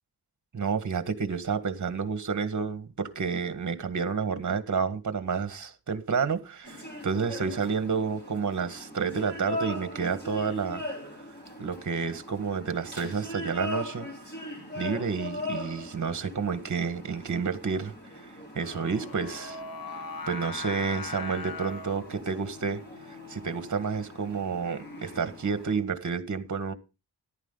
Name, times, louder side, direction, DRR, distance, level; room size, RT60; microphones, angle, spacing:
voice 1, 0.5-10.8 11.6-14.1 14.8-18.2 18.5-19.6 20.3-22.8 23.3-26.7, right 5 dB, 45° right, 1.7 m, -30 dB
sound 1, 6.6-25.8, left 1 dB, 25° left, 5.9 m, -41 dB
Singing, 18.6-25.7, left 4 dB, 60° left, 1.4 m, -42 dB
14.0 x 11.5 x 3.9 m
wide cardioid pair, 115°, 40 cm